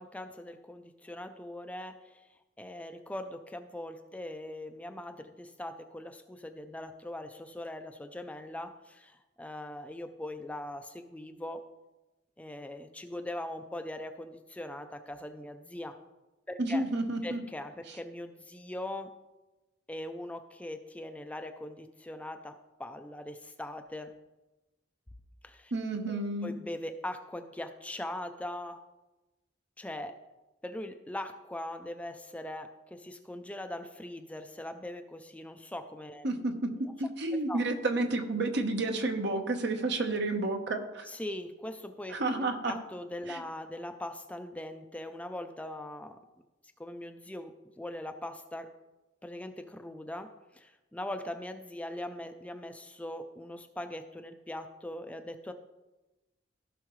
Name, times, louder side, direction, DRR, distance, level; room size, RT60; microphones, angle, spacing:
voice 1, 0.0-2.2 2.6-11.6 12.4-16.0 16.5-16.8 17.2-19.1 19.9-22.5 22.8-24.1 25.4-25.7 26.1-28.8 29.8-30.1 30.6-36.3 37.5-37.6 41.1-46.2 46.8-48.7 49.2-55.5, left 1 dB, 5° left, 7 dB, 0.4 m, -41 dB
voice 2, 16.6-17.4 25.7-26.5 36.2-41.1 42.1-42.7 43.3-43.4, right 2 dB, 65° right, 4 dB, 1.1 m, -31 dB
15.5 x 5.7 x 3.1 m, 1.1 s
head